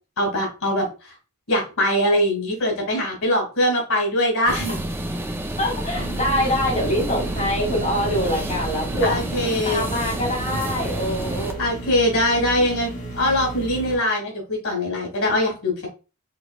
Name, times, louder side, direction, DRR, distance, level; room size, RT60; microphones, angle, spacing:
voice 1, 0.2-1.1 1.5-4.8 9.0-9.9 11.6-15.9, left 1 dB, 85° left, 0 dB, 2.2 m, -22 dB
sound 1, 4.5-11.6, right 1 dB, 10° right, 0.4 m, -29 dB
voice 2, 5.6-9.2 9.6-11.6, left 1 dB, 35° left, -4 dB, 2.6 m, -24 dB
sound 2, 6.0-14.0, right 2 dB, 55° left, 2.0 m, -34 dB
5.9 x 3.3 x 2.3 m, 0.31 s
head